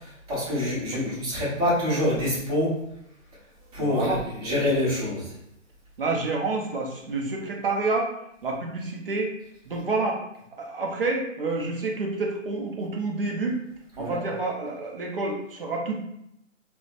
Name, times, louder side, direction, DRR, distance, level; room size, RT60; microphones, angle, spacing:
voice 1, 0.3-2.7 3.7-5.2 14.0-14.1, left 1 dB, 30° right, -8 dB, 1.0 m, -26 dB
voice 2, 3.8-4.2 6.0-8.1 8.4-9.3 9.6-10.2 10.6-13.6 14.0-16.1, right 3 dB, 45° right, 0 dB, 0.5 m, -28 dB
3.0 x 2.0 x 2.5 m, 0.78 s
hypercardioid pair, 165°, 39 cm